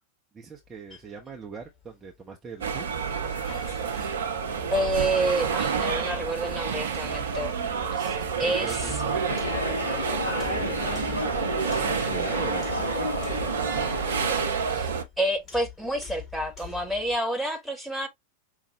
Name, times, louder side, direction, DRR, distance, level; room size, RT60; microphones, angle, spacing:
voice 1, 0.3-2.9 8.4-9.7 10.6-11.3 12.0-13.1, right 5 dB, 20° right, 0.7 m, -41 dB
sound 1, 0.5-17.2, left 8 dB, 25° left, 1.7 m, -47 dB
sound 2, 2.6-15.0, right 6 dB, 65° right, 0.7 m, -29 dB
voice 2, 4.7-7.5 8.0-8.8 14.7-14.9 15.2-18.1, right 1 dB, ahead, 1.3 m, -28 dB
sound 3, 9.3-14.5, left 2 dB, 80° left, 1.3 m, -32 dB
5.3 x 2.3 x 3.0 m
figure-of-eight pair, 90°, 0 cm